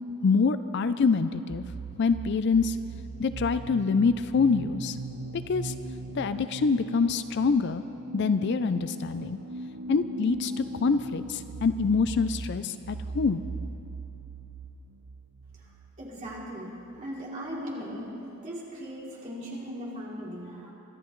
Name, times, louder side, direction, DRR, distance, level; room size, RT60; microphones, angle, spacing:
voice 1, 0.2-1.6 2.0-2.8 3.2-5.0 5.3-5.7 6.2-7.8 8.1-9.4 9.9-13.4, left 4 dB, 55° left, 12 dB, 0.4 m, -25 dB
sound 1, 1.5-17.0, right 2 dB, 80° right, 0.6 m, -40 dB
voice 2, 16.0-20.7, equal, 35° right, -5 dB, 3.0 m, -38 dB
24.0 x 13.0 x 3.1 m, 2.8 s
head